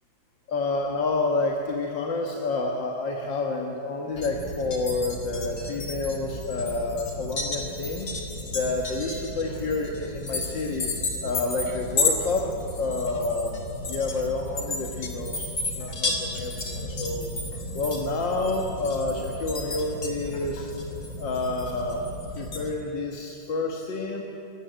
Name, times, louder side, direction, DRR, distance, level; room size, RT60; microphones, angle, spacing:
voice 1, 0.5-8.1 8.5-10.9 11.2-12.5 12.8-13.6 13.9-15.5 15.7-17.3 17.7-20.7 21.2-22.0 22.4-24.2, left 3 dB, 70° left, 1 dB, 2.1 m, -29 dB
sound 1, 4.1-22.7, left 2 dB, 50° left, 3.2 m, -33 dB
28.0 x 15.0 x 7.9 m, 2.9 s
omnidirectional pair, 2.1 m